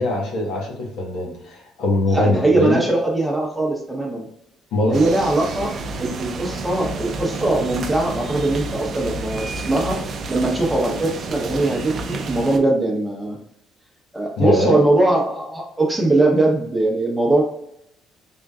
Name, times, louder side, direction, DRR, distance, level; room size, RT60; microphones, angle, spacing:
voice 1, 0.0-2.8 4.7-5.0 14.4-14.8, left 2 dB, 75° left, -1 dB, 1.3 m, -22 dB
voice 2, 2.1-4.3 4.8-5.7 6.0-10.0 10.3-13.4 14.1-17.4, right 2 dB, 5° right, -1 dB, 0.9 m, -20 dB
sound 1, 4.9-12.6, right 3 dB, 45° right, 0.5 m, -30 dB
3.7 x 3.7 x 2.4 m, 0.75 s
cardioid pair, 115°, 0 cm